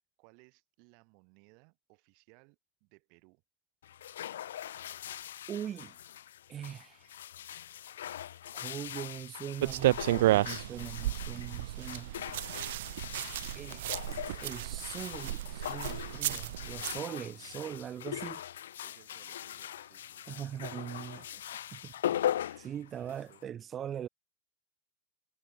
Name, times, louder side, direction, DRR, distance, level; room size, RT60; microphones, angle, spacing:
voice 1, 0.2-3.4 17.0-17.6 18.8-20.3 20.9-21.6 22.4-23.4, right 38 dB, 50° right, 5.9 m, -63 dB
sound 1, 3.8-23.4, left 11 dB, 85° left, 0.4 m, -40 dB
voice 2, 5.5-6.0 6.5-7.2 8.5-12.1 13.5-14.1 14.4-18.4 20.3-21.2 21.7-22.3 22.6-24.1, right 9 dB, 25° right, 0.6 m, -41 dB
sound 2, 9.6-17.0, right 15 dB, 70° right, 0.3 m, -32 dB
supercardioid pair, 130°, 0 cm